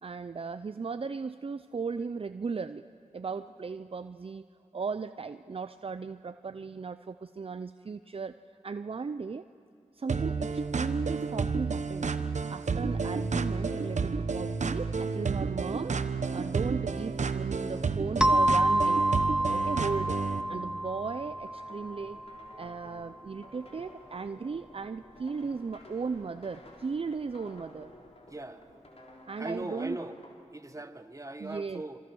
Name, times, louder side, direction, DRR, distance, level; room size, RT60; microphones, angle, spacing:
voice 1, 0.0-2.8 3.1-4.4 4.7-8.4 8.6-9.4 9.9-12.1 12.5-16.0 16.3-19.0 19.5-20.2 20.5-22.2 22.6-27.9 29.3-30.0 31.4-31.8, right 5 dB, 50° right, 11 dB, 0.5 m, -36 dB
sound 1, 10.1-20.4, right 4 dB, 70° right, 1.0 m, -31 dB
sound 2, 15.6-30.3, left 2 dB, 55° left, 3.7 m, -54 dB
sound 3, 18.2-22.6, right 1 dB, 5° right, 0.8 m, -28 dB
voice 2, 28.3-28.7 29.4-30.2 30.5-32.0, right 2 dB, 25° right, 9 dB, 1.4 m, -39 dB
27.0 x 24.5 x 6.2 m, 2.5 s
cardioid pair, 45°, 13 cm